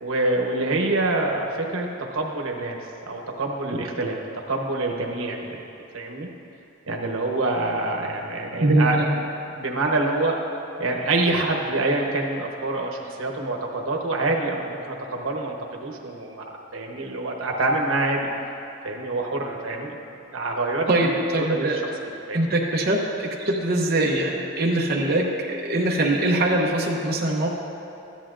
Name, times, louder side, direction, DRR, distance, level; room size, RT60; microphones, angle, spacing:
voice 1, 0.0-2.8 3.0-5.6 5.9-6.3 6.9-9.0 9.5-10.5 10.8-16.4 16.7-18.3 18.8-20.0 20.3-21.7 22.3-22.5, right 2 dB, 85° right, 0 dB, 1.0 m, -26 dB
voice 2, 8.6-9.1 20.9-21.8 22.3-27.5, right 1 dB, 50° right, -2 dB, 0.8 m, -22 dB
13.5 x 10.5 x 2.5 m, 2.9 s
head